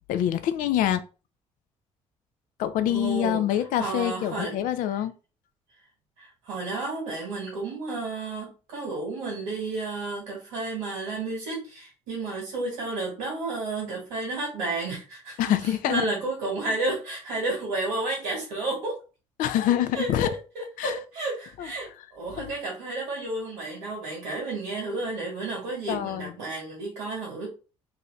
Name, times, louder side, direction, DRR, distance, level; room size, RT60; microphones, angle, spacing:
voice 1, 0.1-1.0 2.6-5.1 15.4-16.0 19.4-20.3 20.8-21.0 21.6-21.7 22.4-22.5 25.9-26.3, left 11 dB, 60° left, 0.4 m, -25 dB
voice 2, 2.8-3.4 3.8-4.5 6.2-19.0 19.9-27.5, right 3 dB, 75° right, 1.3 m, -32 dB
2.6 x 2.6 x 3.2 m
hypercardioid pair, 45°, 16 cm